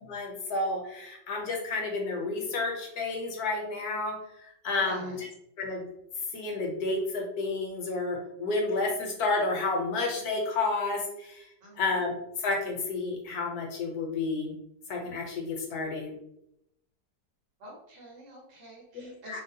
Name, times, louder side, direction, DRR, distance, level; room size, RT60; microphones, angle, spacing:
voice 1, 0.0-4.1 4.4-5.1 5.6-5.9 6.3-11.4 11.8-14.5 14.9-16.1 18.9-19.4, left 3 dB, 70° left, 0 dB, 1.1 m, -31 dB
voice 2, 4.7-5.3 11.6-11.9 17.6-19.4, equal, 85° right, -4 dB, 1.8 m, -46 dB
3.6 x 2.1 x 2.6 m, 0.79 s
omnidirectional pair, 1.9 m